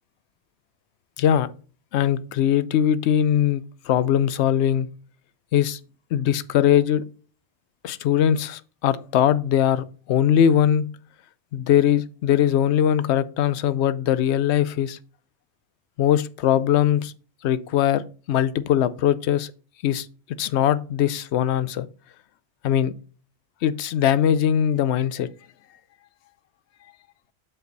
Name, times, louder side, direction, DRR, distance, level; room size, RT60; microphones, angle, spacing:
voice 1, 1.2-1.5 1.9-4.9 5.5-5.8 6.1-7.0 7.8-10.8 11.5-15.0 16.0-17.1 17.4-18.0 18.3-19.5 19.8-20.1 20.4-21.9 22.6-22.9 23.6-25.3, left 10 dB, 75° left, 0.8 m, -21 dB
6.3 x 5.5 x 3.9 m
omnidirectional pair, 1.2 m